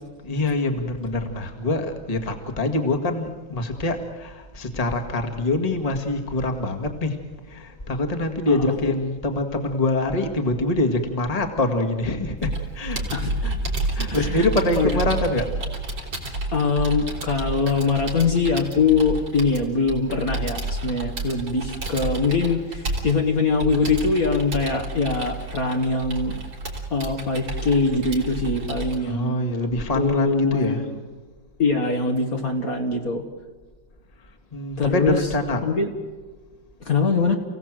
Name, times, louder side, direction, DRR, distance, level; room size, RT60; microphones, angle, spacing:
voice 1, 0.2-7.2 7.5-13.0 13.4-13.6 13.9-15.5 29.0-30.8 34.5-35.6, left 2 dB, 20° left, 4 dB, 1.8 m, -25 dB
Computer keyboard, 12.4-29.0, right 2 dB, 70° right, 4.3 m, -30 dB
voice 2, 13.1-13.5 14.1-14.5 14.8-14.9 16.5-26.3 26.9-29.4 29.9-31.0 31.6-33.2 34.8-35.3 35.6-35.9 36.8-37.4, left 4 dB, 50° left, 3 dB, 2.0 m, -23 dB
29.0 x 17.0 x 7.6 m, 1.4 s
omnidirectional pair, 2.1 m